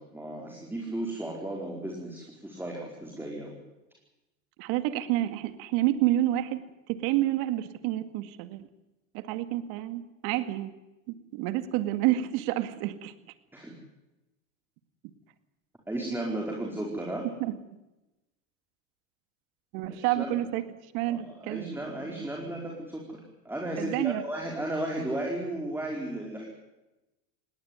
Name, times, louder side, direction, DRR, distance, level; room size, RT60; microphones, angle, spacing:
voice 1, 0.0-3.5 13.5-13.7 15.9-17.3 20.0-20.3 21.1-23.2 23.4-26.5, right 1 dB, 5° right, -1 dB, 4.9 m, -34 dB
voice 2, 4.6-6.6 6.9-8.7 9.1-10.7 11.1-13.1 17.4-17.6 19.7-20.6 20.9-22.3 23.8-24.2, right 14 dB, 60° right, 11 dB, 2.2 m, -29 dB
20.0 x 18.0 x 9.6 m, 1.0 s
hypercardioid pair, 105°, 41 cm